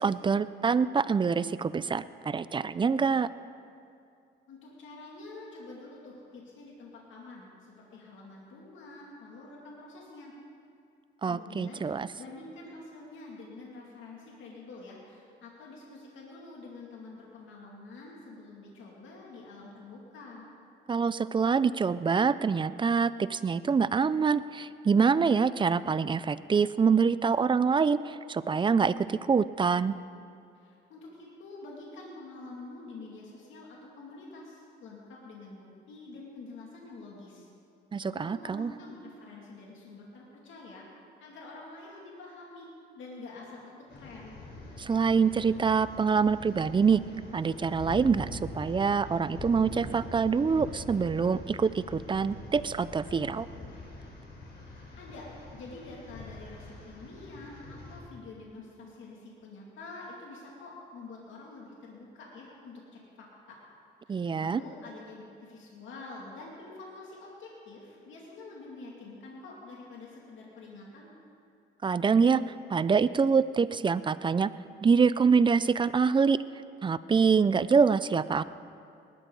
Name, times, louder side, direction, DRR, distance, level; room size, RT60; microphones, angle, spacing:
voice 1, 0.0-3.3 11.2-12.1 20.9-29.9 37.9-38.7 44.8-47.0 47.3-53.5 64.1-64.6 71.8-72.4 72.7-74.5 74.8-76.4 76.8-78.4, right 5 dB, 25° right, 16 dB, 0.4 m, -25 dB
voice 2, 4.5-10.3 11.3-20.5 30.5-37.5 38.0-40.9 41.2-44.4 54.7-55.3 55.5-63.6 64.1-71.2, left 3 dB, 75° left, -3 dB, 2.5 m, -47 dB
sound 1, 43.9-58.0, left 2 dB, 55° left, 4.1 m, -44 dB
19.5 x 12.5 x 3.9 m, 2.5 s
cardioid pair, 90°, 20 cm